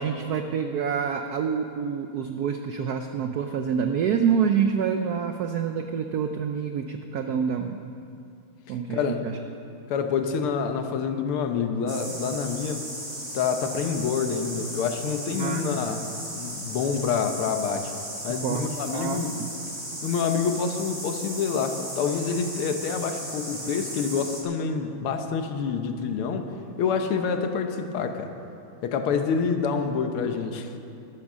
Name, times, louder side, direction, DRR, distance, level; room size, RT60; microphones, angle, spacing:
voice 1, 0.0-7.8 8.7-9.3 15.4-15.6 15.9-16.0 18.4-18.7 18.9-19.5, right 7 dB, 90° right, 6 dB, 0.8 m, -27 dB
voice 2, 8.7-9.2 9.9-12.9 13.3-16.1 16.4-17.9 18.2-19.4 20.0-26.5 26.8-28.3 28.8-30.7, left 6 dB, 85° left, 6 dB, 1.9 m, -27 dB
sound 1, 11.9-24.4, right 1 dB, 15° right, 2.2 m, -36 dB
12.0 x 11.5 x 6.2 m, 2.6 s
omnidirectional pair, 2.4 m